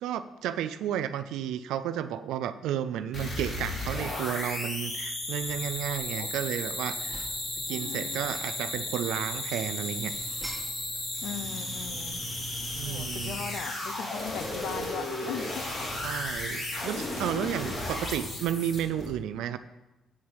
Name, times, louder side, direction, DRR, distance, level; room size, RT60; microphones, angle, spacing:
voice 1, 0.0-7.3 7.7-10.1 12.8-13.4 16.0-19.6, right 10 dB, 90° right, 12 dB, 0.4 m, -32 dB
sound 1, 3.1-19.1, left 1 dB, 50° left, 3.3 m, -34 dB
sound 2, 4.9-5.0 5.5-6.5 6.8-7.5 7.9-8.8 9.2-11.2 11.4-12.4, right 1 dB, ahead, 2.1 m, -48 dB
voice 2, 7.7-8.4 11.2-12.2 12.8-15.6 17.0-17.4, left 8 dB, 80° left, 10 dB, 0.7 m, -39 dB
8.4 x 4.7 x 7.3 m, 1.0 s
cardioid pair, 90°, 0 cm